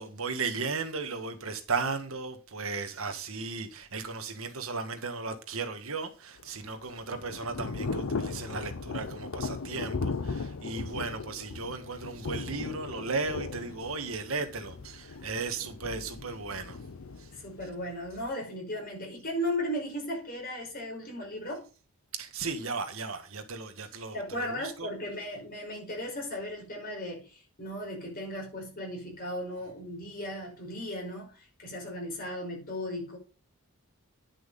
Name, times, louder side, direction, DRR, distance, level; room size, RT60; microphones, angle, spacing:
voice 1, 0.0-16.8 17.2-17.3 22.1-24.9, right 4 dB, 70° right, 1.7 m, -35 dB
Thunder / Rain, 6.4-18.3, left 4 dB, 70° left, 0.6 m, -37 dB
voice 2, 17.3-21.6 24.1-33.2, left 1 dB, 45° left, 5.3 m, -36 dB
10.5 x 6.2 x 5.3 m
head